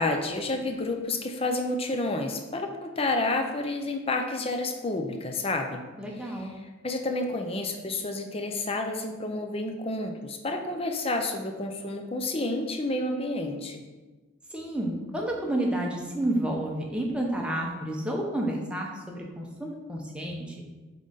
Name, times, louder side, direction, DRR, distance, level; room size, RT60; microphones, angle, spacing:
voice 1, 0.0-5.8 6.2-13.8, left 2 dB, 30° left, 4 dB, 0.6 m, -30 dB
voice 2, 6.0-6.5 14.5-20.5, right 1 dB, 5° right, -1 dB, 0.8 m, -30 dB
7.8 x 3.8 x 4.0 m, 1.2 s
head